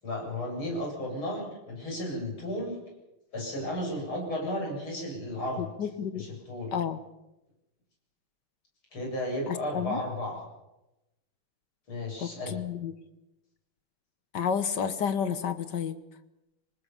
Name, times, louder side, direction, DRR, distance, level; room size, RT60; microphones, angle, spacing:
voice 1, 0.0-2.8 3.3-5.7 6.1-6.8 8.9-10.4 11.9-12.6, left 1 dB, 85° left, -1 dB, 8.5 m, -34 dB
voice 2, 5.8-6.3 6.7-7.0 9.5-10.0 12.2-12.9 14.3-16.0, left 7 dB, 60° left, 12 dB, 1.6 m, -31 dB
25.0 x 19.5 x 7.1 m, 0.94 s
omnidirectional pair, 2.3 m